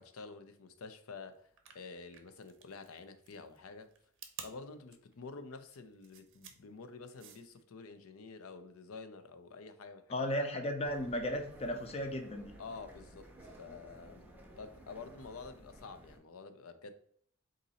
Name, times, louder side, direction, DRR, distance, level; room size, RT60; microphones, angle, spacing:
voice 1, 0.0-1.5 1.7-3.9 4.4-10.2 12.6-13.3 13.6-16.9, left 4 dB, 90° left, 0.5 m, -49 dB
sound 1, 1.5-7.6, right 8 dB, 60° right, 0.6 m, -52 dB
voice 2, 10.1-12.5, left 1 dB, 30° left, 0.6 m, -35 dB
sound 2, 10.8-16.2, right 1 dB, 10° right, 0.6 m, -55 dB
3.9 x 2.6 x 4.0 m
head